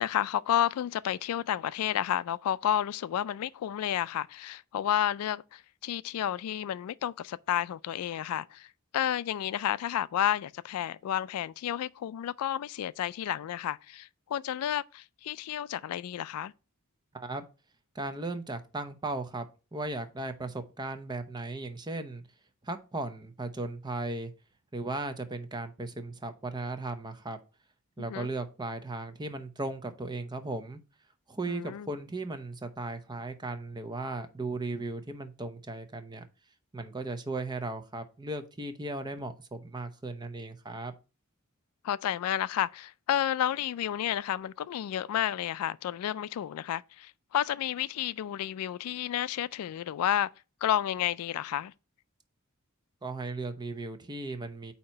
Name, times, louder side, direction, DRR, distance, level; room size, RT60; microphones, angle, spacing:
voice 1, 0.0-16.5 28.0-28.3 31.5-31.9 41.8-50.3 50.6-51.7, left 10 dB, 85° left, 0.3 m, -31 dB
voice 2, 17.1-17.5 17.9-19.5 19.7-22.2 22.6-24.3 24.7-27.4 28.0-30.8 31.3-36.2 36.7-40.9 53.0-54.7, right 2 dB, 20° right, 0.6 m, -36 dB
8.6 x 2.9 x 4.4 m
head